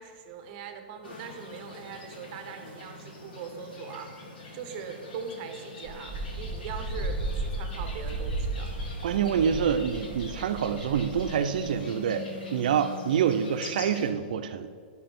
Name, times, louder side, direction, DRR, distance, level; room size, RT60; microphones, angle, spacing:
voice 1, 0.0-4.1 4.5-8.7, right 6 dB, 30° right, 6 dB, 0.9 m, -41 dB
sound 1, 1.0-14.1, left 3 dB, 65° left, 2.2 m, -44 dB
Wind, 5.9-11.8, right 2 dB, 10° right, 1.5 m, -34 dB
voice 2, 9.0-12.2 12.5-14.7, right 8 dB, 50° right, 9 dB, 0.7 m, -26 dB
11.5 x 6.0 x 6.0 m, 2.1 s
hypercardioid pair, 180°, 6 cm